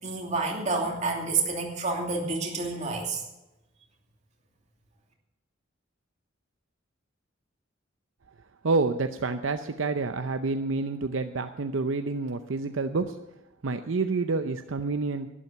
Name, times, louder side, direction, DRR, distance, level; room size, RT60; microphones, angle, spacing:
voice 1, 0.0-3.2, right 3 dB, 35° right, 0 dB, 2.8 m, -29 dB
voice 2, 8.6-13.2 13.6-15.3, right 3 dB, 70° right, 8 dB, 0.7 m, -28 dB
12.0 x 11.5 x 6.9 m, 0.96 s
head